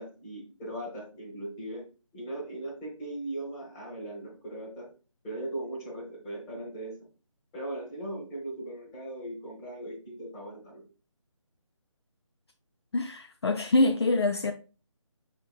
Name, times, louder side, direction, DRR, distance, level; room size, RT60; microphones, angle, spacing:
voice 1, 0.0-1.9 2.1-4.9 5.2-7.0 7.5-10.8, right 1 dB, 10° left, 1.1 m, -38 dB
voice 2, 12.9-14.5, left 2 dB, 55° left, 0.4 m, -25 dB
6.5 x 3.4 x 2.3 m
figure-of-eight pair, 165°, 17 cm